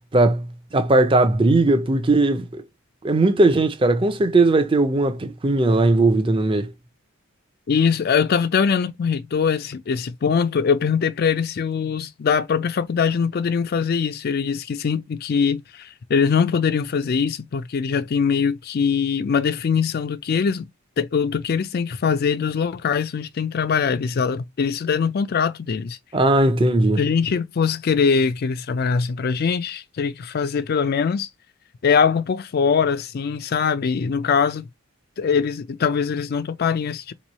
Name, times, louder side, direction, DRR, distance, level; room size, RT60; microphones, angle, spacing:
voice 1, 0.1-0.5 0.7-2.6 3.0-6.7 26.1-27.0, right 2 dB, 25° right, 0.5 m, -18 dB
voice 2, 7.7-20.6 21.0-26.0 27.0-31.3 31.8-34.6 35.2-37.1, left 6 dB, 45° left, 0.3 m, -22 dB
3.0 x 2.6 x 4.0 m
head